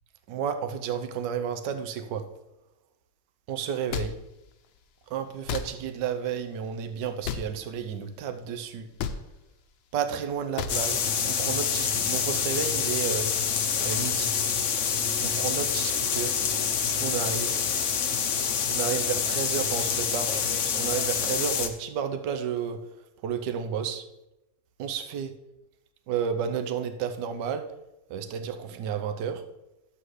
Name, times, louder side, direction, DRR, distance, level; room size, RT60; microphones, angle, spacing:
voice 1, 0.3-2.2 3.5-4.1 5.1-8.9 9.9-13.3 13.8-14.3 15.2-16.4 17.0-17.5 18.7-22.8 23.2-24.0 24.8-25.3 26.1-27.6 28.1-29.4, right 7 dB, 70° right, 8 dB, 1.3 m, -31 dB
sound 1, 3.9-4.1 5.5-5.7 7.2-7.5 9.0-9.2 10.6-10.8, left 8 dB, 85° left, 1.4 m, -30 dB
sound 2, 10.7-21.7, left 7 dB, 60° left, 0.8 m, -27 dB
11.5 x 7.8 x 3.2 m, 0.92 s
omnidirectional pair, 2.1 m